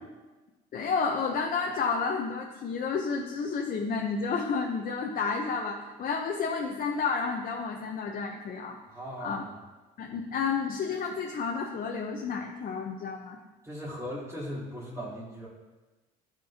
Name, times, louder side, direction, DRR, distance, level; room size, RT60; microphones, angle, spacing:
voice 1, 0.7-8.8 9.2-9.5 10.0-13.4, left 5 dB, 50° left, 1 dB, 0.9 m, -31 dB
voice 2, 8.9-9.5 13.6-15.5, equal, 15° right, -9 dB, 3.0 m, -38 dB
12.0 x 6.2 x 2.9 m, 1.2 s
supercardioid pair, 70°, 19 cm